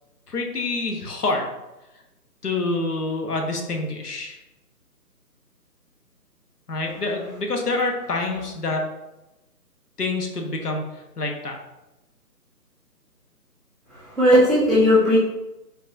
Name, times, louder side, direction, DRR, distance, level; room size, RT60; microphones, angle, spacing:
voice 1, 0.3-1.5 2.4-4.4 6.7-8.8 10.0-11.6, left 2 dB, 70° left, 2 dB, 1.2 m, -27 dB
voice 2, 13.9-15.2, left 1 dB, ahead, -13 dB, 0.6 m, -17 dB
5.0 x 3.9 x 2.6 m, 0.98 s
hypercardioid pair, 170°, 48 cm